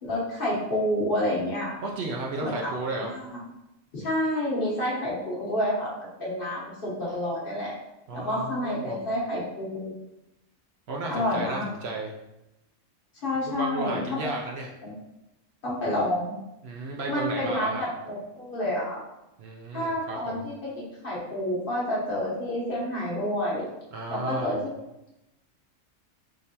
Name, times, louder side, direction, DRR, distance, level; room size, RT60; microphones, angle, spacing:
voice 1, 0.0-1.8 2.4-2.7 3.0-3.2 3.9-7.7 8.1-9.9 11.1-11.7 13.2-14.3 14.8-15.0 15.6-16.3 17.1-19.0 19.7-23.7 24.1-24.6, left 1 dB, 50° left, -5 dB, 1.1 m, -29 dB
voice 2, 1.8-3.1 8.1-9.0 10.9-12.1 13.5-14.7 16.6-17.8 19.4-20.5 23.9-24.6, right 2 dB, 65° right, -1 dB, 0.7 m, -33 dB
3.7 x 3.2 x 2.8 m, 0.92 s
omnidirectional pair, 1.3 m